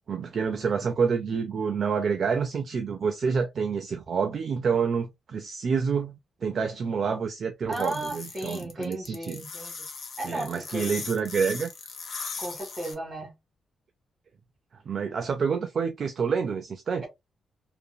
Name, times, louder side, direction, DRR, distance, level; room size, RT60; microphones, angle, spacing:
voice 1, 0.1-9.4 10.2-11.7 14.9-17.0, right 6 dB, 40° right, 0.4 m, -28 dB
sound 1, 7.7-12.9, left 5 dB, 50° left, 0.7 m, -38 dB
voice 2, 7.7-9.9 10.2-11.0 12.4-13.4, right 1 dB, 20° right, 1.6 m, -35 dB
2.8 x 2.4 x 2.2 m
wide cardioid pair, 170°, 0 cm